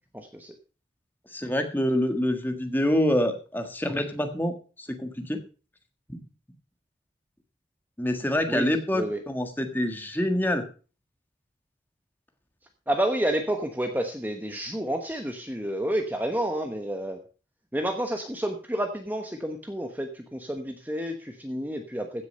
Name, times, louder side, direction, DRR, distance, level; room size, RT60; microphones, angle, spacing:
voice 1, 0.1-0.5 8.5-9.2 12.9-17.2 17.7-22.3, right 1 dB, 10° right, 5 dB, 1.1 m, -30 dB
voice 2, 1.3-4.5 4.8-5.4 6.1-6.2 8.0-10.6, left 1 dB, 10° left, 5 dB, 1.6 m, -26 dB
15.5 x 6.8 x 5.4 m, 0.36 s
head